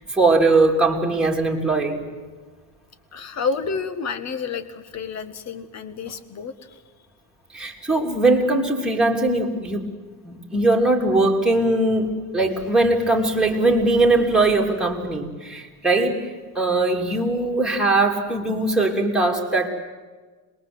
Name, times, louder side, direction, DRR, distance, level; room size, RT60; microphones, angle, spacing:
voice 1, 0.1-2.0 7.5-9.8 10.2-19.7, right 2 dB, ahead, -1 dB, 3.2 m, -20 dB
voice 2, 3.1-6.5, left 5 dB, 45° left, 11 dB, 1.8 m, -29 dB
26.5 x 21.5 x 8.0 m, 1.4 s
cardioid pair, 160°, 38 cm